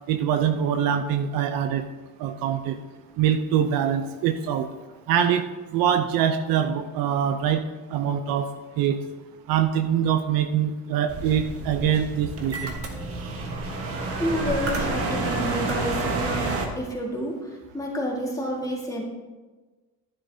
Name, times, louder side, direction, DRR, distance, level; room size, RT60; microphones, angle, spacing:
voice 1, 0.1-1.8 2.2-2.8 3.2-4.7 5.1-5.5 5.7-7.6 7.9-8.5 8.8-9.0 9.5-12.7, right 9 dB, 60° right, 8 dB, 0.7 m, -23 dB
sound 1, 11.1-16.6, right 2 dB, 35° right, 1.4 m, -29 dB
voice 2, 14.2-16.5 16.8-19.0, equal, 10° left, -2 dB, 1.8 m, -29 dB
11.5 x 9.7 x 2.8 m, 1.3 s
cardioid pair, 130°, 40 cm